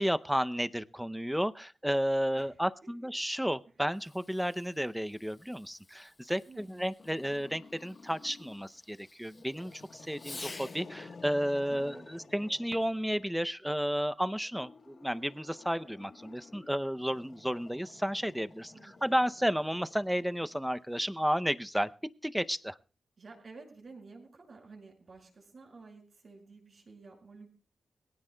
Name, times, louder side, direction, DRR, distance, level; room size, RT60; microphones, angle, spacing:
voice 1, 0.0-21.9 22.2-22.8, equal, 5° right, 12 dB, 0.6 m, -32 dB
Fireworks, 3.9-11.0 12.6-13.1, left 3 dB, 30° left, 0.8 m, -51 dB
Growling, 7.0-8.7 9.3-13.4 14.4-20.9, left 4 dB, 55° left, 1.2 m, -53 dB
voice 2, 11.7-12.6 18.7-19.2 23.2-27.5, right 3 dB, 50° right, 2 dB, 5.9 m, -52 dB
22.5 x 16.0 x 2.3 m, 0.37 s
wide cardioid pair, 115°, 0 cm